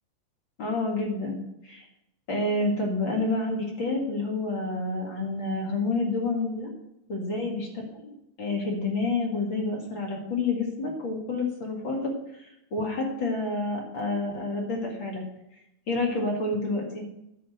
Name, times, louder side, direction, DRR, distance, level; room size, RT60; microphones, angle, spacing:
voice 1, 0.6-1.9 2.3-6.7 7.1-7.7 7.9-8.1 8.4-15.2 15.9-17.0, left 2 dB, 45° left, -1 dB, 1.6 m, -29 dB
11.5 x 4.3 x 7.7 m, 0.84 s
omnidirectional pair, 5.0 m